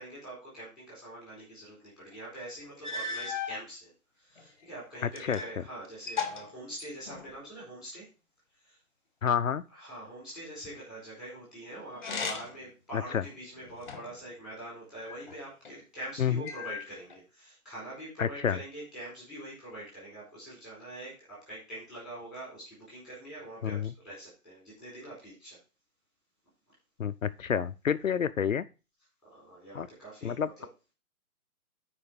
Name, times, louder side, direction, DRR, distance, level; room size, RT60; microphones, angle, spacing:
voice 1, 0.0-3.9 4.2-8.1 8.6-8.8 9.7-25.6 29.2-30.7, right 1 dB, ahead, -6 dB, 4.3 m, -44 dB
sound 1, 2.2-2.3 2.8-3.6 4.4-5.6 5.8-7.4 11.9-12.7 13.2-14.2 15.0-15.8 16.4-17.2, left 5 dB, 30° left, 1.3 m, -37 dB
voice 2, 5.2-5.6 9.2-9.6 12.9-13.2 16.2-16.4 18.2-18.6 23.6-23.9 27.0-28.6 29.7-29.9 30.2-30.5, left 8 dB, 60° left, 13 dB, 0.6 m, -29 dB
8.5 x 5.1 x 5.1 m, 0.31 s
hypercardioid pair, 170°, 45 cm